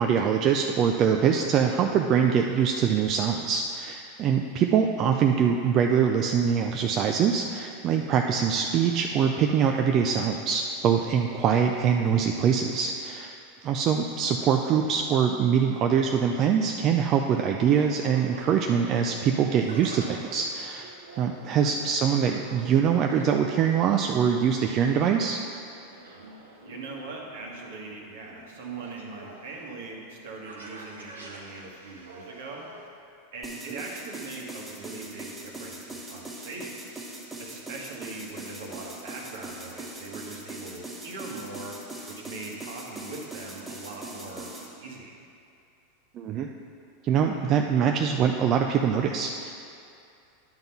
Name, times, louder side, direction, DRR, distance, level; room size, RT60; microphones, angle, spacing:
voice 1, 0.0-13.4 13.6-25.4 46.2-46.5 47.0-49.5, right 7 dB, 40° right, 3 dB, 0.4 m, -24 dB
sound 1, 17.4-32.9, right 2 dB, 90° right, 1.1 m, -47 dB
voice 2, 21.5-22.0 26.6-32.7 33.3-37.0 37.4-41.8 42.1-45.2, right 3 dB, 70° right, -1 dB, 1.4 m, -41 dB
sound 2, 33.4-44.7, right 2 dB, 10° right, 1.8 m, -41 dB
10.5 x 3.9 x 5.9 m, 2.5 s
hypercardioid pair, 95°, 0 cm